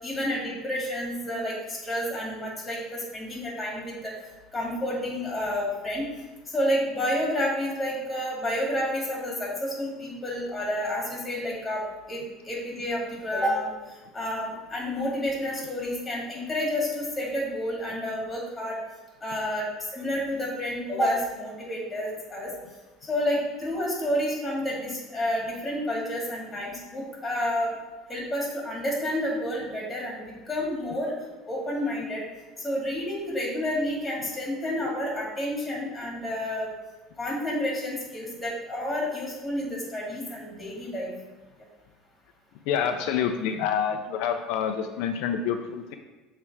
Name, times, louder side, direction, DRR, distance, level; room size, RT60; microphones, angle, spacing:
voice 1, 0.0-4.1 4.5-6.1 6.5-13.7 14.1-18.8 19.2-19.7 19.9-22.5 23.1-27.7 28.1-31.1 31.5-32.2 32.6-36.7 37.2-41.1, left 1 dB, 10° left, -3 dB, 2.1 m, -30 dB
voice 2, 42.7-45.9, left 7 dB, 70° left, 5 dB, 0.5 m, -27 dB
6.9 x 3.3 x 4.8 m, 1.2 s
cardioid pair, 135°, 0 cm